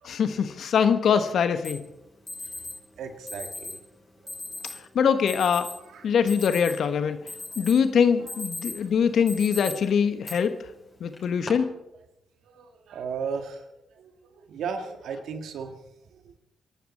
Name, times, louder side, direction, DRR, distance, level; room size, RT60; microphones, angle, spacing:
voice 1, 0.0-1.8 4.9-5.7 6.0-7.2 7.6-10.6 11.0-11.7, left 7 dB, 70° left, 10 dB, 1.2 m, -23 dB
Alarm, 1.6-1.7 2.3-2.7 3.3-3.8 4.3-4.7 5.3-5.7 6.1-6.9 7.3-7.8 8.1-8.8 9.3-9.7 10.2-10.3 11.1-11.5, left 2 dB, 35° left, 5.7 m, -37 dB
voice 2, 3.0-3.8 4.2-4.3 5.8-6.1 8.2-8.3 8.8-8.9 12.4-15.7 16.1-16.4, right 6 dB, 75° right, 6 dB, 1.8 m, -36 dB
23.5 x 12.0 x 4.3 m, 0.89 s
supercardioid pair, 45°, 0 cm